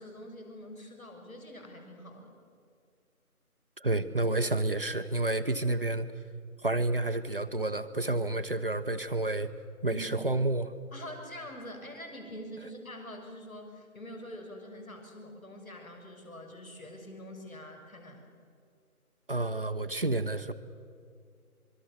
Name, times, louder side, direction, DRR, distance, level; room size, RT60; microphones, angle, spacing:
voice 1, 0.0-2.3 9.9-10.2 10.9-18.2, equal, 65° left, 4 dB, 6.7 m, -45 dB
voice 2, 3.8-6.1 6.6-9.5 9.8-10.7 19.3-20.5, right 2 dB, 40° right, 9 dB, 1.0 m, -29 dB
25.5 x 23.5 x 7.0 m, 2.3 s
figure-of-eight pair, 160°, 44 cm